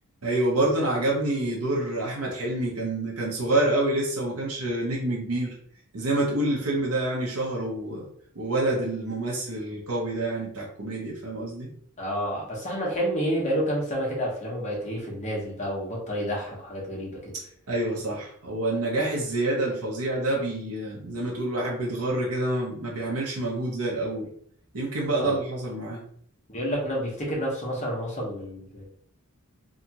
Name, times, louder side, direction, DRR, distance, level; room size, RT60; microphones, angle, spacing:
voice 1, 0.2-5.5 5.9-8.1 8.3-11.7 17.3-24.3 24.7-26.0, right 2 dB, 80° right, -3 dB, 0.8 m, -27 dB
voice 2, 12.0-17.3 25.2-25.4 26.5-28.9, equal, 35° left, -3 dB, 1.0 m, -29 dB
2.8 x 2.4 x 2.8 m, 0.63 s
head